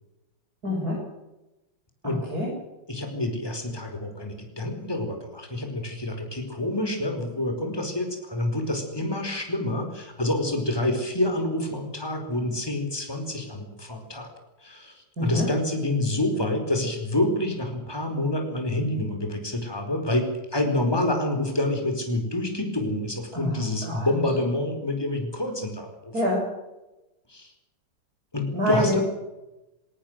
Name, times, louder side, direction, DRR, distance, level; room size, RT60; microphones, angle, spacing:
voice 1, 0.6-1.0 2.0-2.5 15.2-15.5 23.3-24.1 26.1-26.5 28.5-29.0, equal, 50° right, -3 dB, 7.7 m, -26 dB
voice 2, 2.9-14.3 14.6-26.2 27.3-27.5 28.3-29.0, left 1 dB, 10° left, 4 dB, 4.7 m, -27 dB
22.0 x 18.0 x 7.8 m, 0.98 s
omnidirectional pair, 2.1 m